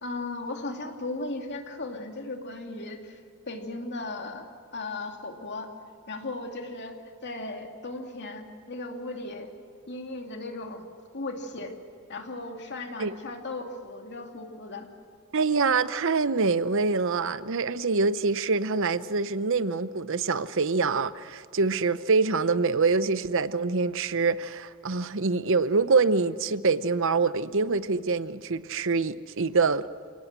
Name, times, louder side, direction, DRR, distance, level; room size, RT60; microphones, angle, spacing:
voice 1, 0.0-3.2 3.5-4.4 4.7-5.7 6.1-6.9 7.2-9.5 9.9-10.9 11.1-11.7 12.1-14.9, left 2 dB, 55° left, 3 dB, 2.7 m, -36 dB
voice 2, 15.3-29.9, right 4 dB, 60° right, 14 dB, 0.8 m, -25 dB
28.0 x 18.5 x 7.6 m, 2.3 s
head